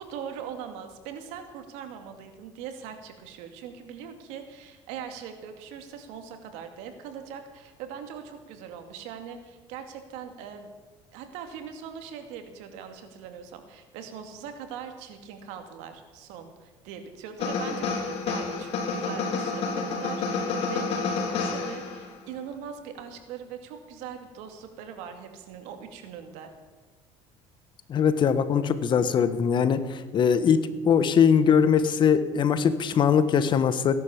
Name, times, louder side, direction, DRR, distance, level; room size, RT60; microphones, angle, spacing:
voice 1, 0.0-10.7 11.1-26.5, right 7 dB, 85° right, 6 dB, 2.4 m, -41 dB
sound 1, 17.4-22.2, left 4 dB, 60° left, 3.8 m, -29 dB
voice 2, 27.9-33.9, left 7 dB, 40° left, 12 dB, 1.3 m, -21 dB
17.0 x 11.0 x 7.3 m, 1.3 s
cardioid pair, 120°, 12 cm